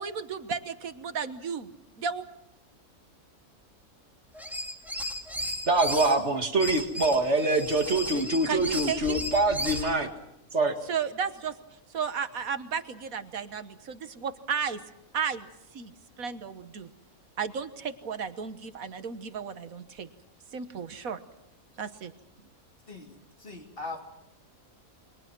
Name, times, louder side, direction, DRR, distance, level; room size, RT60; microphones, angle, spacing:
voice 1, 0.0-2.3 8.1-9.2 10.9-11.6 11.9-14.8 15.1-15.5 15.7-16.9 17.4-20.1 20.5-21.2 21.8-22.1, right 6 dB, 75° right, 11 dB, 1.6 m, -34 dB
sound 1, 4.3-6.1 6.6-9.9, left 1 dB, ahead, 2.9 m, -35 dB
voice 2, 5.7-10.1 10.5-10.8, right 2 dB, 50° right, 5 dB, 2.2 m, -25 dB
voice 3, 22.9-24.0, left 3 dB, 40° left, 2 dB, 3.5 m, -40 dB
29.0 x 23.5 x 6.1 m, 0.83 s
omnidirectional pair, 1.5 m